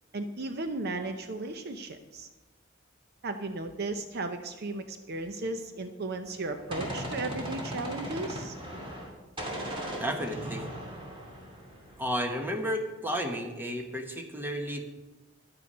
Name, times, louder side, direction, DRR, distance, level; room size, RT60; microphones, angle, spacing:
voice 1, 0.1-2.3 3.2-8.6, right 2 dB, 55° right, 8 dB, 0.7 m, -35 dB
Gunshot gunfire, 6.3-9.1 9.4-12.1, equal, 25° right, 2.7 m, -38 dB
voice 2, 10.0-10.7 12.0-14.9, equal, 10° right, 3 dB, 1.3 m, -32 dB
11.5 x 9.3 x 5.5 m, 1.1 s
head